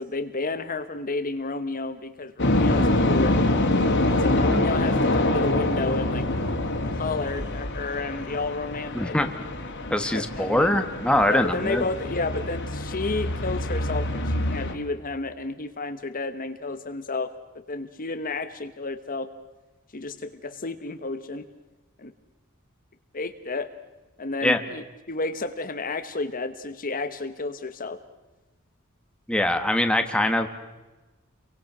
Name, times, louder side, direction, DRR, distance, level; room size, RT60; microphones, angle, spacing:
voice 1, 0.0-3.3 4.1-6.3 6.8-9.2 10.1-10.8 11.3-17.3 17.7-19.3 19.9-21.4 22.0-22.1 23.1-23.7 24.2-28.0, left 3 dB, 40° left, 9 dB, 1.2 m, -31 dB
sound 1, 2.4-14.7, left 1 dB, 60° left, 3.0 m, -25 dB
voice 2, 4.4-4.7 8.9-9.3 9.9-11.8 24.4-24.6 29.3-30.5, left 1 dB, 5° left, 6 dB, 1.7 m, -23 dB
30.0 x 23.5 x 6.1 m, 1.1 s
head